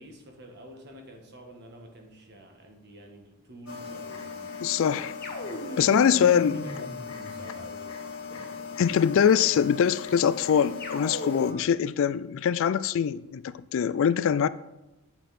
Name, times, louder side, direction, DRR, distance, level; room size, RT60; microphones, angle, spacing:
voice 1, 0.0-4.6 5.4-8.0 8.3-8.5, right 1 dB, 50° right, 1.5 m, -48 dB
sound 1, 3.7-11.5, left 5 dB, 75° left, 1.4 m, -39 dB
voice 2, 4.6-5.1 5.8-6.6 8.8-14.5, left 8 dB, 60° left, 0.3 m, -23 dB
sound 2, 5.2-7.7 10.8-11.8, equal, 40° left, 1.7 m, -37 dB
8.5 x 8.1 x 4.2 m
head